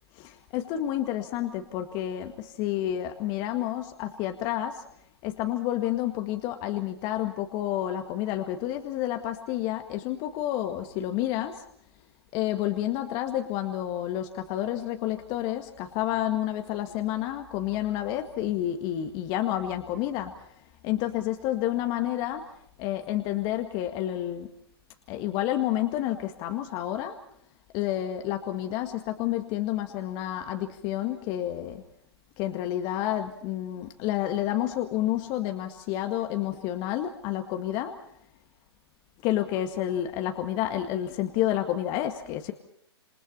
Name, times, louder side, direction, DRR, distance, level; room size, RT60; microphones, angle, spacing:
voice 1, 0.2-4.8 5.2-11.6 12.3-20.3 20.8-22.5 22.8-24.5 25.1-27.2 27.7-31.8 32.4-38.0 39.2-42.5, left 12 dB, 30° left, 7 dB, 1.9 m, -29 dB
28.5 x 28.0 x 4.2 m, 0.65 s
hypercardioid pair, 125°, 14 cm